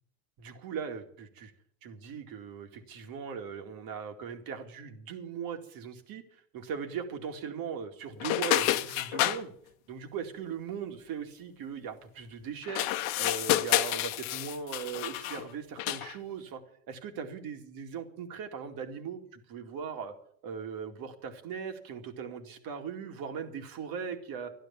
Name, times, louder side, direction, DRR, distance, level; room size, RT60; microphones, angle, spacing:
voice 1, 0.4-1.5 1.8-6.2 6.5-9.5 9.9-12.9 13.2-16.6 16.9-20.1 20.4-24.5, right 7 dB, 55° right, 5 dB, 2.5 m, -39 dB
sound 1, 8.2-9.4 12.6-15.4 15.8-16.1, left 15 dB, 70° left, 1.1 m, -29 dB
13.5 x 12.0 x 7.2 m, 0.63 s
supercardioid pair, 95°, 43 cm